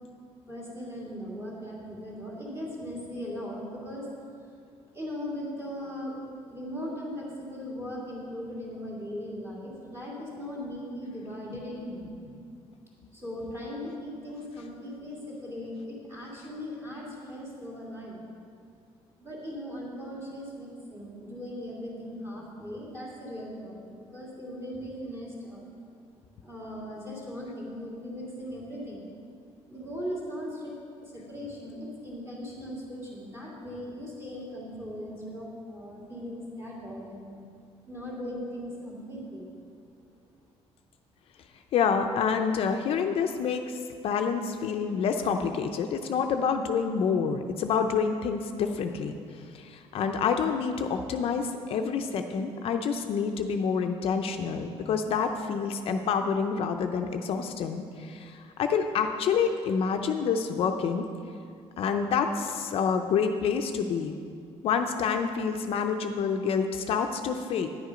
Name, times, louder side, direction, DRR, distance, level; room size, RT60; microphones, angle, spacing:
voice 1, 0.5-4.1 4.9-12.1 13.1-18.2 19.2-25.7 26.4-29.1 29.7-30.7 31.0-37.4 37.9-39.5, equal, 20° right, -5 dB, 2.7 m, -38 dB
voice 2, 12.0-12.5 41.7-61.1 61.8-64.2 64.6-67.7, left 6 dB, 55° left, 5 dB, 0.5 m, -28 dB
10.5 x 8.3 x 5.0 m, 2.3 s
cardioid pair, 150°, 11 cm